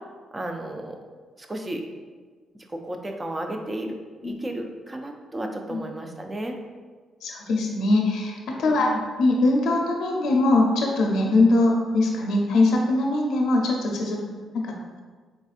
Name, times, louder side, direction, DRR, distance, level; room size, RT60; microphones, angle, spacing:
voice 1, 0.3-1.0 1.4-1.8 2.7-4.0 4.2-6.6 8.7-9.0, right 1 dB, 20° right, 3 dB, 0.5 m, -33 dB
voice 2, 7.2-14.2 14.5-14.7, left 2 dB, 75° left, 0 dB, 0.5 m, -22 dB
4.0 x 3.4 x 2.4 m, 1.5 s
cardioid pair, 90°, 0 cm